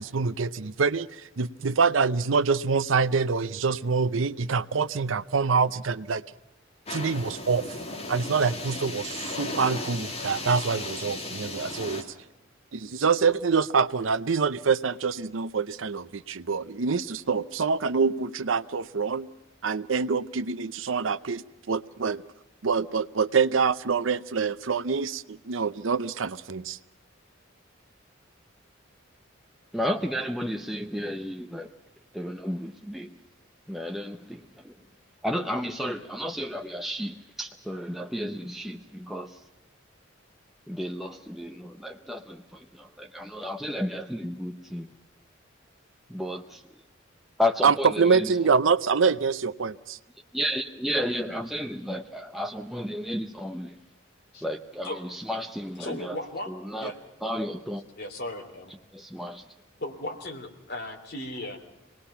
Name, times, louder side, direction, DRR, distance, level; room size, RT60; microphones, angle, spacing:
voice 1, 0.0-6.2 6.9-7.8 8.1-12.0 12.7-19.3 19.6-22.2 22.6-26.8 47.6-50.0, right 5 dB, 80° right, 13 dB, 0.7 m, -25 dB
sound 1, 6.9-12.0, left 2 dB, 30° left, 2.7 m, -35 dB
voice 2, 29.7-31.7 32.1-33.1 33.7-34.7 35.2-39.4 40.7-44.9 46.1-46.6 47.4-48.4 50.3-53.8 54.4-56.2 56.5-56.9 57.2-57.8 58.9-59.4, equal, ahead, 3 dB, 0.7 m, -32 dB
voice 3, 55.8-56.5 56.8-57.0 58.0-58.7 59.8-61.6, left 1 dB, 55° left, 3 dB, 3.2 m, -36 dB
26.5 x 19.5 x 5.7 m, 0.94 s
head